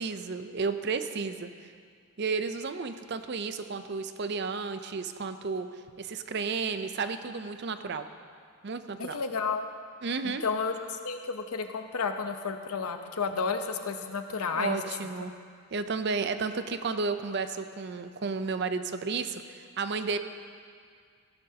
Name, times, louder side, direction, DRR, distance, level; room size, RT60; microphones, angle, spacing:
voice 1, 0.0-1.7 2.2-5.7 6.0-8.1 8.6-9.2 10.0-10.4 14.5-15.3 15.7-20.2, right 4 dB, 50° right, 10 dB, 0.5 m, -32 dB
voice 2, 9.0-9.7 10.2-10.7 11.0-14.8, left 5 dB, 80° left, 6 dB, 0.8 m, -31 dB
15.5 x 12.0 x 2.8 m, 2.1 s
head